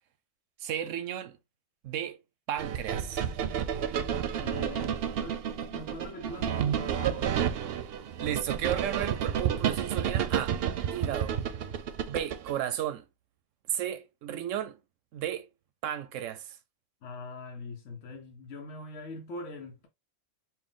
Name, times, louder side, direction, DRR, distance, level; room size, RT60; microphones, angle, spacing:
voice 1, 0.6-1.4 1.8-2.2 2.5-3.2 8.2-10.6 10.9-11.4 12.0-13.0 13.7-14.8 15.1-15.5 15.8-16.6, right 10 dB, 85° right, 1.0 m, -34 dB
sound 1, 2.6-12.6, right 9 dB, 60° right, 0.7 m, -31 dB
voice 2, 4.0-7.4 17.0-19.9, left 2 dB, 75° left, 1.1 m, -43 dB
4.5 x 2.2 x 3.6 m
omnidirectional pair, 1.3 m